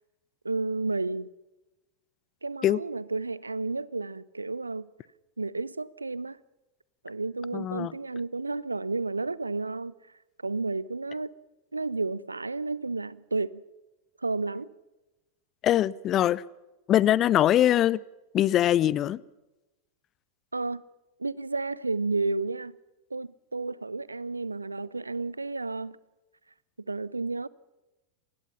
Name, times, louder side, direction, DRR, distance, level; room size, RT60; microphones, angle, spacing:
voice 1, 0.4-1.3 2.4-4.9 5.4-6.4 7.0-9.9 10.4-11.3 11.7-13.6 14.2-14.7 20.5-20.8 21.2-22.8 23.1-26.0 26.9-27.5, right 3 dB, 80° right, 0.7 m, -31 dB
voice 2, 7.5-7.9 15.6-16.4 16.9-18.0 18.3-19.2, left 12 dB, 30° left, 0.7 m, -22 dB
26.5 x 20.0 x 5.7 m
figure-of-eight pair, 90°, 0 cm